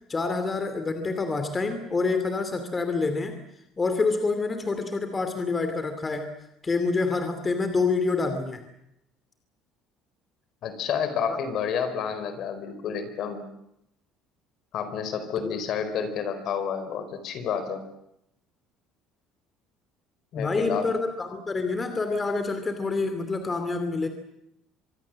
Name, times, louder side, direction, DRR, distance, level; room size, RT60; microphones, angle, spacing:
voice 1, 0.1-3.4 3.8-6.3 6.6-8.6 11.3-11.4 15.4-15.6 20.3-24.1, left 3 dB, 20° left, 8 dB, 2.7 m, -27 dB
voice 2, 10.6-13.4 14.7-17.8 20.3-20.9, left 7 dB, 55° left, 10 dB, 4.4 m, -30 dB
25.5 x 23.0 x 7.6 m, 0.79 s
cardioid pair, 125°, 0 cm